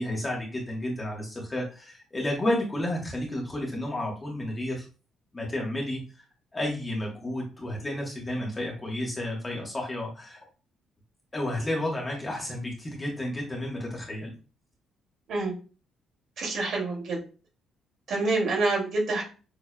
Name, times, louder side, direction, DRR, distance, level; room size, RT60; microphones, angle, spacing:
voice 1, 0.0-4.8 5.3-6.0 6.5-10.4 11.3-14.3, left 1 dB, 15° left, -1 dB, 1.4 m, -31 dB
voice 2, 16.4-17.2 18.1-19.2, right 3 dB, 60° right, -3 dB, 2.6 m, -27 dB
6.4 x 3.3 x 2.3 m, 0.34 s
cardioid pair, 145°, 0 cm